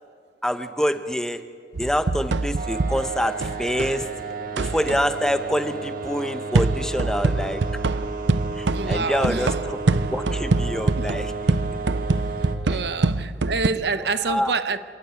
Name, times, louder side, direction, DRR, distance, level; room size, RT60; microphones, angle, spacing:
voice 1, 0.4-1.4 1.8-4.1 4.6-7.6 8.6-9.8 10.1-11.3 12.7-12.8 14.3-14.5, equal, 5° left, 0.9 m, -26 dB
sound 1, 1.7-4.0 4.6-5.1 6.5-13.7, right 3 dB, 85° right, 0.7 m, -25 dB
sound 2, 2.5-12.5, right 4 dB, 50° right, 2.1 m, -33 dB
voice 2, 8.7-9.6 11.0-11.1 12.6-14.8, right 4 dB, 65° right, 1.0 m, -27 dB
27.0 x 18.5 x 8.3 m
head